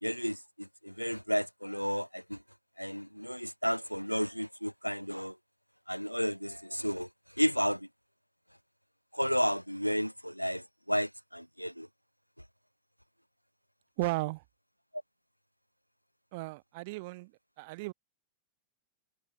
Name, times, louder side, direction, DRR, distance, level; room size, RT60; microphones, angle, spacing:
voice 1, 0.0-2.4 2.8-5.3 5.9-7.1 7.4-7.9 9.1-11.9, equal, 90° left, 0.4 m, -32 dB
voice 2, 14.0-14.4 16.3-17.3 17.6-17.9, right 24 dB, 50° right, 2.1 m, -35 dB
figure-of-eight pair, 90°, 0 cm